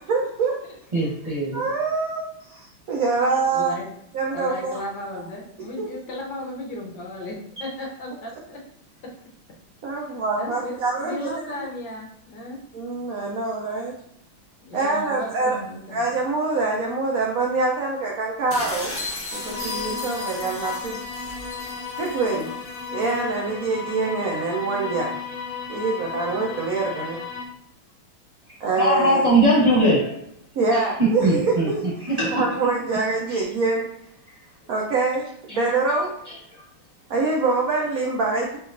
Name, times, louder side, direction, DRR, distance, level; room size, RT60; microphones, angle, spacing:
voice 1, 0.1-0.6 1.5-3.7 4.1-4.8 5.8-5.9 9.8-11.6 12.7-13.9 14.7-15.6 15.9-18.9 19.3-21.0 22.0-22.5 22.9-25.1 25.7-27.2 28.6-29.2 30.6-31.8 32.3-33.8 34.7-36.1 37.1-38.6, right 3 dB, 75° right, -2 dB, 0.8 m, -25 dB
voice 2, 0.9-1.7 28.7-30.2 30.7-32.6 33.3-33.4 35.5-35.6 36.3-36.4, right 1 dB, 25° right, -8 dB, 0.9 m, -21 dB
voice 3, 3.5-3.9 4.3-8.6 10.0-12.6 14.6-16.0, left 1 dB, 65° left, -2 dB, 1.4 m, -35 dB
sound 1, 18.5-23.2, left 2 dB, 10° left, 0.6 m, -35 dB
sound 2, 19.3-27.5, left 5 dB, 85° left, 1.4 m, -34 dB
4.8 x 3.0 x 2.5 m, 0.73 s
omnidirectional pair, 2.3 m